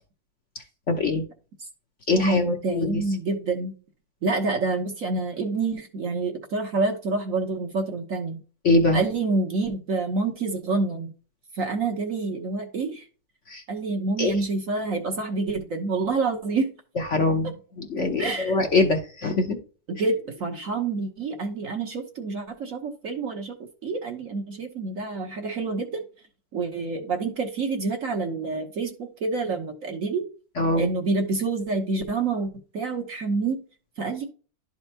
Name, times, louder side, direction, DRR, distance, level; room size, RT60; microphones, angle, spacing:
voice 1, 0.9-1.2 2.1-3.0 8.6-9.0 13.5-13.6 14.2-14.3 17.1-17.5 17.8-19.6 30.6-30.9, left 2 dB, 50° left, 3 dB, 1.1 m, -23 dB
voice 2, 2.1-3.8 4.2-8.4 8.9-11.1 11.5-13.1 13.7-16.7 18.2-18.6 19.9-26.0 26.5-30.3 30.8-33.6 34.0-34.3, right 3 dB, 50° right, 3 dB, 1.2 m, -27 dB
12.0 x 4.4 x 2.8 m, 0.37 s
omnidirectional pair, 2.0 m